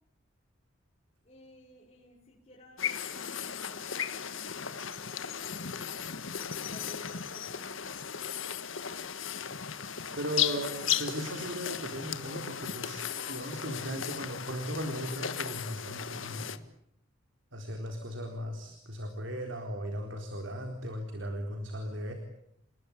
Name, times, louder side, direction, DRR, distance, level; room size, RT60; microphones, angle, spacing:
voice 1, 1.2-6.2 6.7-8.1, left 1 dB, 35° left, -5 dB, 6.9 m, -54 dB
sound 1, 2.8-16.6, left 8 dB, 75° left, 1.6 m, -36 dB
voice 2, 10.2-16.5 17.5-22.1, equal, 65° right, 5 dB, 4.1 m, -37 dB
29.5 x 20.5 x 8.6 m, 0.73 s
head